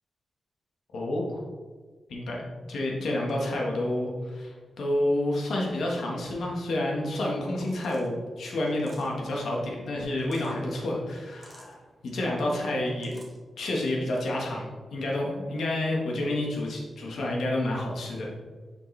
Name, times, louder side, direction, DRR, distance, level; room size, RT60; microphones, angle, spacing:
voice 1, 0.9-1.4 2.1-2.4 2.7-11.8 12.1-13.2 13.6-18.3, left 1 dB, 75° left, -2 dB, 1.5 m, -29 dB
sound 1, 7.6-8.1 8.6-9.2 10.0-10.6 11.3-11.7 12.7-13.4, right 2 dB, 25° right, 1.2 m, -53 dB
6.8 x 5.2 x 3.3 m, 1.4 s
wide cardioid pair, 160°, 0 cm